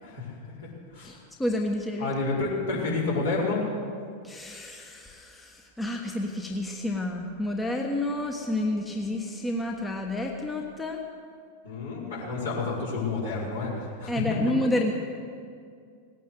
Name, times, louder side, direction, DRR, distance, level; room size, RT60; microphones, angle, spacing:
voice 1, 0.0-1.2 2.0-3.6 11.6-14.2, left 3 dB, 65° left, -6 dB, 5.0 m, -30 dB
voice 2, 1.0-2.1 4.2-11.0 14.1-14.9, left 1 dB, 10° left, 1 dB, 1.3 m, -30 dB
18.5 x 9.2 x 8.0 m, 2.2 s
figure-of-eight pair, 90°, 0 cm